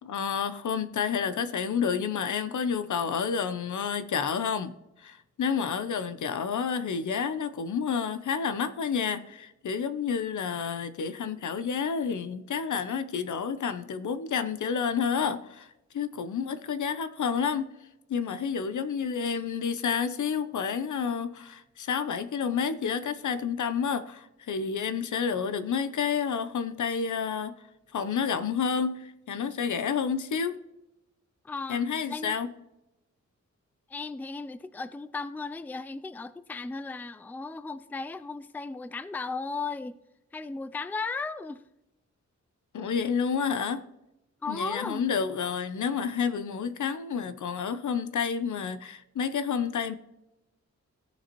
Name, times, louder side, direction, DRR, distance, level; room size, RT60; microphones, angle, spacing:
voice 1, 0.0-4.7 5.0-15.7 15.9-17.7 18.1-27.6 27.9-30.6 31.7-32.5 42.7-43.9 44.5-49.9, left 6 dB, 85° left, 0.7 m, -30 dB
voice 2, 31.4-31.8 32.1-32.3 33.9-40.0 40.3-41.6 44.4-45.0, left 4 dB, 5° left, 0.3 m, -35 dB
17.0 x 6.9 x 3.0 m
wide cardioid pair, 130°, 29 cm